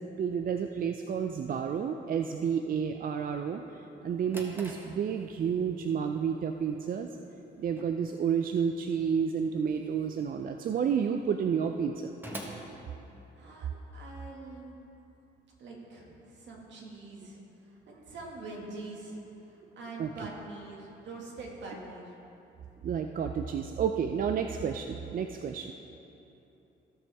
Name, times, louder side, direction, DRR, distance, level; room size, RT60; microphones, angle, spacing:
voice 1, 0.0-7.1 7.6-12.1 20.0-20.1 22.8-25.7, right 7 dB, 45° right, 5 dB, 0.4 m, -30 dB
Drawer open or close, 3.9-13.7, right 1 dB, 10° right, 1.4 m, -49 dB
voice 2, 13.4-14.8 15.6-22.1, right 2 dB, 65° right, -2 dB, 2.1 m, -44 dB
16.0 x 6.1 x 3.5 m, 3.0 s
cardioid pair, 90°, 20 cm